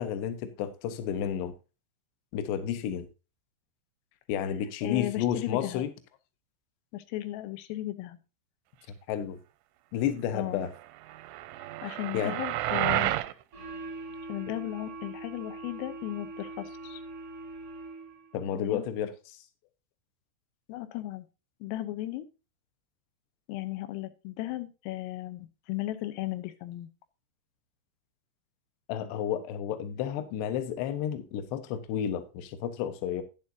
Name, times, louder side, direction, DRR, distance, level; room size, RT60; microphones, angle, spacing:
voice 1, 0.0-1.5 2.3-3.1 4.3-5.9 9.1-9.4 9.9-10.7 12.1-12.4 18.3-19.4 28.9-33.2, left 9 dB, 70° left, 9 dB, 2.9 m, -31 dB
voice 2, 4.8-5.9 6.9-8.2 10.3-10.7 11.8-13.1 14.3-17.0 18.6-18.8 20.7-21.3 21.6-22.3 23.5-26.9, left 15 dB, 90° left, 11 dB, 3.5 m, -35 dB
sound 1, 11.1-13.3, right 15 dB, 80° right, 2.8 m, -30 dB
sound 2, 13.5-18.3, right 2 dB, 55° right, 1.0 m, -42 dB
11.0 x 10.0 x 2.7 m, 0.31 s
omnidirectional pair, 5.8 m